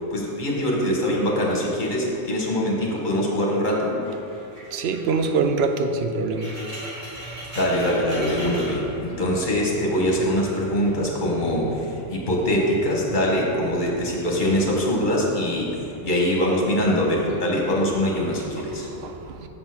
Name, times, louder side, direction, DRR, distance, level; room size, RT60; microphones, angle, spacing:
voice 1, 0.1-4.0 7.5-18.9, equal, 45° left, -2 dB, 1.5 m, -23 dB
sound 1, 4.0-9.6 9.9-11.0 11.6-12.0, equal, 45° right, 2.4 m, -39 dB
voice 2, 4.7-6.6 19.0-19.5, right 4 dB, 70° right, 7 dB, 0.8 m, -24 dB
sound 2, 7.1-15.0, right 9 dB, 10° right, 1.4 m, -42 dB
7.2 x 5.4 x 6.0 m, 2.7 s
omnidirectional pair, 1.1 m